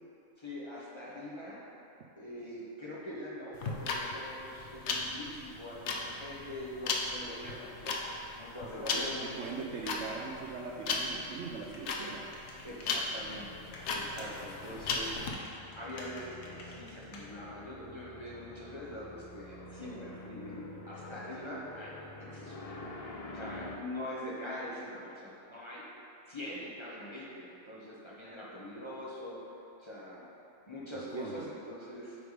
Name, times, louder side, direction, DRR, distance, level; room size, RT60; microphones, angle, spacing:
voice 1, 0.4-1.6 2.2-9.3 9.7-9.9 12.6-13.6 13.9-15.5 15.7-21.9 22.3-22.8 23.3-25.8 26.3-30.3 30.7-32.2, left 1 dB, 25° left, -7 dB, 1.0 m, -43 dB
sound 1, 3.5-15.3, left 4 dB, 65° left, 0.9 m, -36 dB
sound 2, 4.5-23.8, left 2 dB, 45° left, 0.4 m, -50 dB
voice 2, 9.4-12.3 14.2-14.4 14.7-15.0 30.9-31.4, right 5 dB, 65° right, 0 dB, 0.8 m, -41 dB
sound 3, 11.6-13.8 14.1-17.3, left 3 dB, 90° left, 1.4 m, -51 dB
8.4 x 3.5 x 4.9 m, 2.9 s
omnidirectional pair, 1.4 m